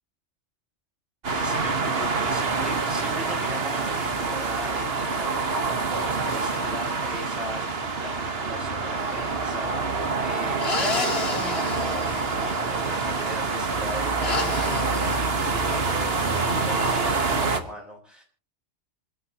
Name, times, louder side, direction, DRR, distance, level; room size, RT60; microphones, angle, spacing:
sound 1, 1.2-17.6, right 4 dB, 55° right, 1.7 m, -26 dB
voice 1, 1.3-18.2, equal, ahead, -1 dB, 5.9 m, -40 dB
sound 2, 9.0-9.5 10.6-13.0 14.2-15.2, left 3 dB, 55° left, 2.1 m, -31 dB
27.5 x 13.0 x 3.0 m, 0.39 s
omnidirectional pair, 1.3 m